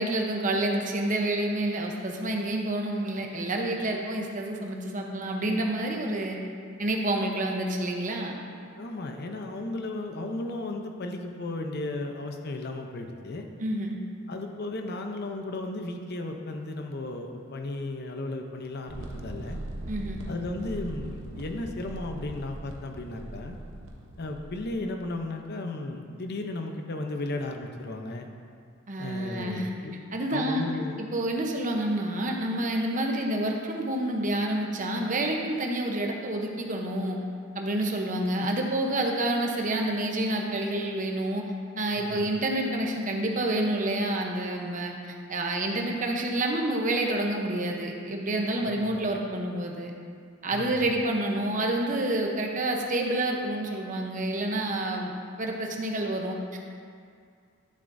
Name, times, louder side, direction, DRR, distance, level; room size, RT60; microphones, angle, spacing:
voice 1, 0.0-6.4 6.8-8.4 13.6-14.0 19.9-20.2 28.9-29.7 30.1-30.6 31.0-37.2 37.6-41.4 41.8-44.9 45.3-49.9 50.4-55.1 55.4-56.6, right 1 dB, 40° right, 1 dB, 0.8 m, -28 dB
voice 2, 8.8-13.5 14.3-19.6 20.3-23.6 24.2-28.3 29.0-29.9 30.3-31.0 42.0-42.3 48.6-48.8 50.5-50.8, left 2 dB, 50° left, 4 dB, 0.7 m, -35 dB
sound 1, 18.9-24.8, right 1 dB, 70° right, 1.0 m, -40 dB
11.0 x 7.3 x 2.7 m, 2.2 s
head